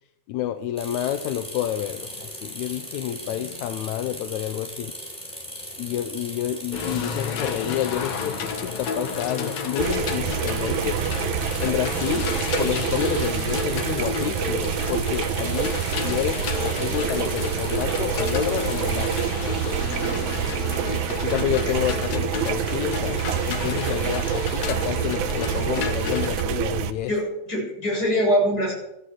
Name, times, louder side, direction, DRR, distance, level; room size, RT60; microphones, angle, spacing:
voice 1, 0.3-4.9 5.8-11.0 11.6-12.3 12.6-19.1 21.2-27.1, left 11 dB, 80° left, 9 dB, 2.1 m, -29 dB
sound 1, 0.8-19.2, equal, ahead, 5.1 m, -39 dB
sound 2, 6.7-26.4, left 5 dB, 65° left, 2.4 m, -31 dB
sound 3, 9.8-26.9, right 10 dB, 75° right, 2.2 m, -27 dB
voice 2, 23.7-24.0 27.1-28.7, equal, 30° left, -1 dB, 7.6 m, -23 dB
14.0 x 13.5 x 6.6 m, 0.83 s
omnidirectional pair, 3.5 m